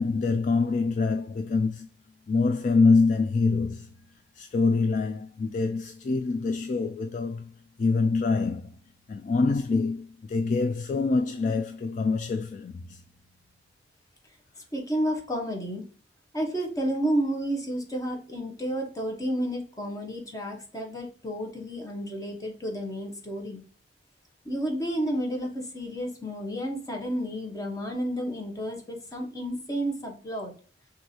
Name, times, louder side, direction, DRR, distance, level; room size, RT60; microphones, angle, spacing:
voice 1, 0.0-1.9 2.3-3.9 4.4-7.5 7.8-8.7 9.1-13.0, left 4 dB, 45° left, 0.3 m, -25 dB
voice 2, 14.7-15.9 16.3-23.6 24.4-30.5, equal, 20° left, 1.1 m, -31 dB
6.1 x 2.6 x 2.8 m
head